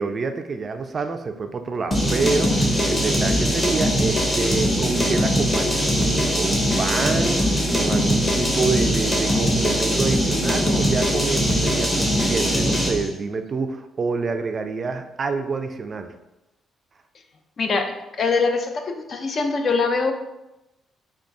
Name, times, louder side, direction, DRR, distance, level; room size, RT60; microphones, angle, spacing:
voice 1, 0.0-16.1, right 4 dB, 40° right, 7 dB, 0.3 m, -27 dB
sound 1, 1.9-13.1, equal, 15° left, 0.8 m, -21 dB
voice 2, 17.6-20.1, left 4 dB, 50° left, 5 dB, 0.4 m, -23 dB
3.8 x 2.3 x 3.5 m, 0.96 s
cardioid pair, 90°, 0 cm